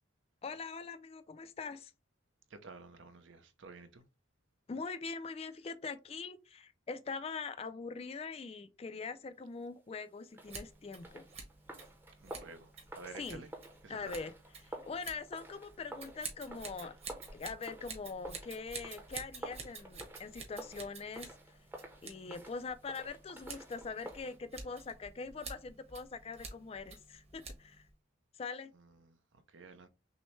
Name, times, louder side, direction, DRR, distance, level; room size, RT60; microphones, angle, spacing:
voice 1, 0.4-1.9 4.7-11.3 13.2-13.4 13.9-14.3 14.6-16.9 17.3-21.6 22.0-27.9 28.3-28.7, left 4 dB, 30° left, 0.3 m, -43 dB
voice 2, 2.5-4.0 12.2-13.5 13.8-14.1 28.7-29.9, right 4 dB, 70° right, 0.7 m, -52 dB
sound 1, 10.3-24.4, right 1 dB, 10° right, 0.7 m, -51 dB
Scissors, 10.4-27.9, right 4 dB, 30° right, 1.0 m, -50 dB
6.1 x 2.1 x 3.1 m
head